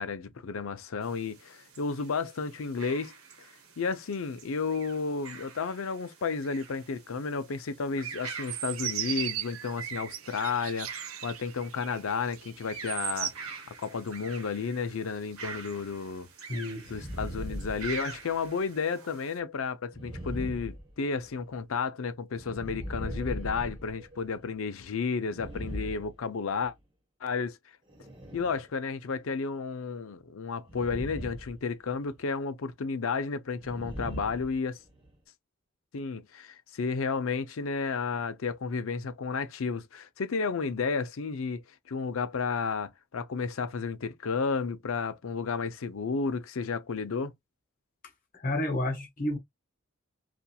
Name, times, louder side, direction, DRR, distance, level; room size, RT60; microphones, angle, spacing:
voice 1, 0.0-3.1 3.8-10.9 11.2-16.3 16.9-26.7 27.2-27.6 28.3-34.8 35.9-47.3, left 5 dB, 75° left, 0.5 m, -32 dB
sound 1, 1.0-19.4, right 5 dB, 85° right, 1.0 m, -46 dB
sound 2, 8.3-13.3, right 11 dB, 70° right, 0.5 m, -36 dB
voice 2, 16.5-17.0 48.3-49.4, left 1 dB, 40° left, 0.7 m, -31 dB
sound 3, 16.8-18.5 19.9-21.4 22.3-24.5 25.2-26.7 27.9-28.6 30.7-31.6 31.8-32.2 33.6-35.1, equal, 20° right, 1.0 m, -39 dB
2.8 x 2.4 x 2.3 m
head